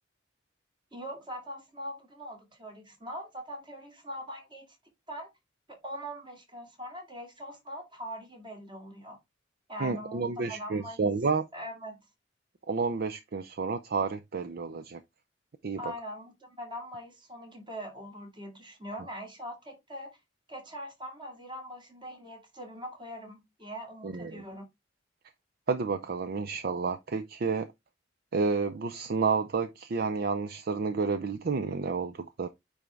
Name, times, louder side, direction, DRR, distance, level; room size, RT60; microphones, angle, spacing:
voice 1, 0.9-4.8 5.1-5.3 5.7-9.2 9.7-11.0 11.5-12.1 15.8-20.2 20.5-24.6, equal, 25° right, 2.3 m, -42 dB
voice 2, 9.8-11.5 12.7-15.0 15.6-15.8 24.0-24.4 25.7-27.7 28.3-32.5, right 4 dB, 55° right, 0.5 m, -30 dB
9.1 x 3.5 x 3.2 m
head